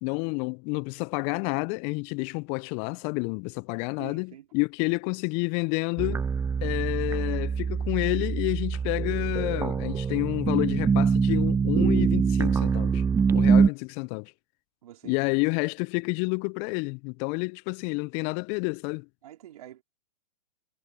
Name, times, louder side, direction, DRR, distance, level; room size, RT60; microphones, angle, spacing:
voice 1, 0.0-6.2 6.6-13.0 13.3-14.3 15.0-19.1, left 33 dB, 30° left, 0.4 m, -29 dB
voice 2, 4.0-4.5 14.8-15.3 19.2-19.8, right 12 dB, 60° right, 4.1 m, -46 dB
sound 1, 6.0-13.7, right 6 dB, 10° right, 0.8 m, -24 dB
hypercardioid pair, 115°, 21 cm